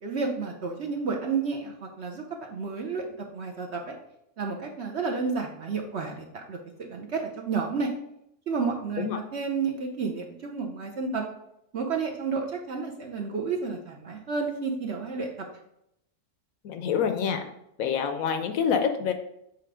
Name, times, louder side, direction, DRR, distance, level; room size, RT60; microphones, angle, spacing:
voice 1, 0.0-2.2 2.5-3.0 3.3-3.9 4.4-7.9 8.5-9.1 9.3-11.2 11.7-15.5, right 5 dB, 55° right, 2 dB, 0.8 m, -31 dB
voice 2, 16.6-17.4 17.8-19.1, left 7 dB, 70° left, 8 dB, 1.0 m, -26 dB
7.6 x 3.2 x 4.9 m, 0.79 s
omnidirectional pair, 1.6 m